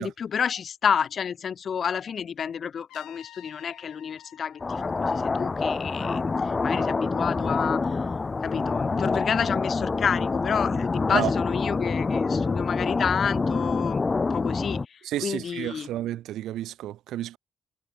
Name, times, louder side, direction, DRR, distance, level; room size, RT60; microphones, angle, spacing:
voice 1, 0.0-7.8 8.4-14.0 14.3-15.9, left 7 dB, 50° left, 0.6 m, -30 dB
Trumpet, 2.9-5.8, left 15 dB, 90° left, 6.5 m, -51 dB
sound 1, 4.6-14.9, left 4 dB, 30° left, 1.2 m, -26 dB
voice 2, 15.1-17.4, right 13 dB, 80° right, 0.6 m, -31 dB
cardioid pair, 90°, 0 cm